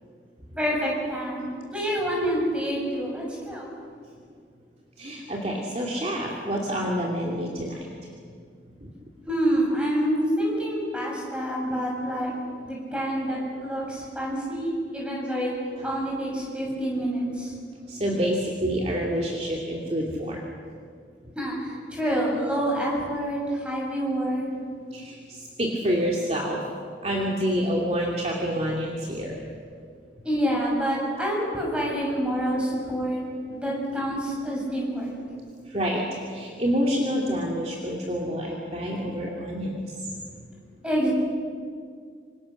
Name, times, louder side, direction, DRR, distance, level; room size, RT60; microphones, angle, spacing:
voice 1, 0.6-3.7 9.3-12.3 12.6-15.5 15.8-17.5 21.4-24.5 30.2-35.1 40.1-40.2 40.8-41.1, equal, 5° right, -3 dB, 7.1 m, -27 dB
voice 2, 5.0-7.9 8.8-8.9 15.8-15.9 17.9-20.4 24.9-26.6 27.0-29.4 35.7-39.9, equal, 35° right, -2 dB, 2.6 m, -28 dB
26.5 x 26.0 x 6.5 m, 2.1 s
head